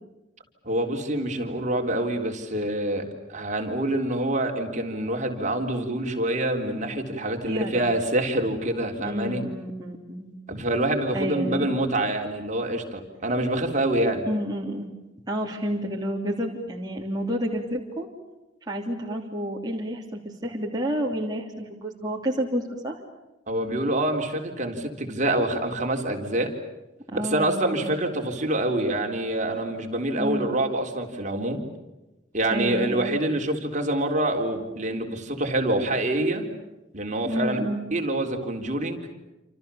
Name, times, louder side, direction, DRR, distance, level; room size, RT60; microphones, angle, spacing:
voice 1, 0.6-9.4 10.5-14.3 23.5-26.5 27.1-31.6 32.3-36.5 36.9-37.6 37.9-39.1, right 1 dB, 40° right, 3 dB, 3.7 m, -26 dB
voice 2, 7.4-7.8 8.9-10.3 11.1-11.8 14.3-14.9 15.3-18.1 18.7-23.0 27.1-27.9 30.2-30.5 32.5-33.2 37.2-37.8, equal, 20° right, -2 dB, 3.0 m, -30 dB
28.0 x 28.0 x 7.1 m, 1.0 s
head